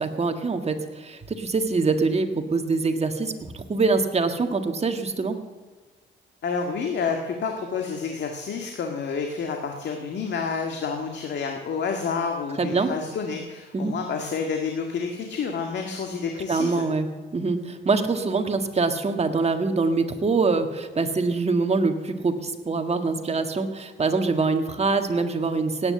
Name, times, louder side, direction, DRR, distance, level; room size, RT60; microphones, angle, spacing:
voice 1, 0.0-5.4 12.6-12.9 13.7-13.9 16.5-17.1 17.3-25.9, right 4 dB, 30° right, 6 dB, 1.8 m, -24 dB
voice 2, 6.4-16.8, left 5 dB, 60° left, 3 dB, 1.9 m, -29 dB
17.5 x 9.7 x 7.7 m, 1.4 s
cardioid pair, 90°, 20 cm